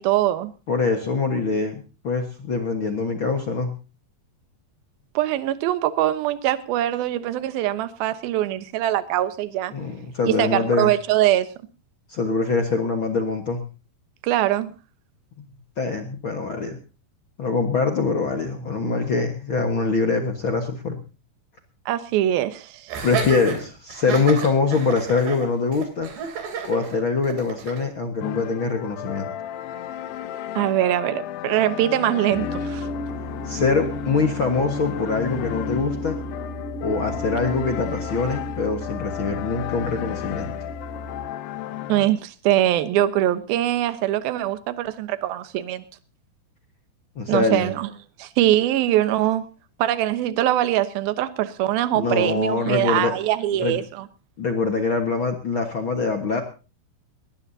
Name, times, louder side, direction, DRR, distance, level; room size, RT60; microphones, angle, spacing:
voice 1, 0.0-0.5 5.2-9.7 10.2-11.5 14.2-14.7 21.9-23.0 30.6-32.9 41.9-45.8 47.3-47.9 48.2-49.4 49.8-54.1, right 13 dB, 70° right, 12 dB, 2.8 m, -22 dB
voice 2, 0.7-1.7 2.0-3.8 9.7-10.9 12.1-13.6 15.8-16.8 17.4-21.0 23.0-26.1 26.6-29.3 33.4-36.2 36.8-40.5 47.1-47.7 51.9-53.1 53.6-53.8 54.4-56.4, left 4 dB, 60° left, 4 dB, 1.3 m, -24 dB
Laughter, 22.9-27.9, right 6 dB, 90° right, 5.4 m, -31 dB
sound 1, 28.2-42.1, left 12 dB, 85° left, 2.9 m, -34 dB
sound 2, 32.0-41.2, left 1 dB, 20° left, 5.9 m, -34 dB
19.5 x 19.5 x 2.8 m, 0.33 s
omnidirectional pair, 4.7 m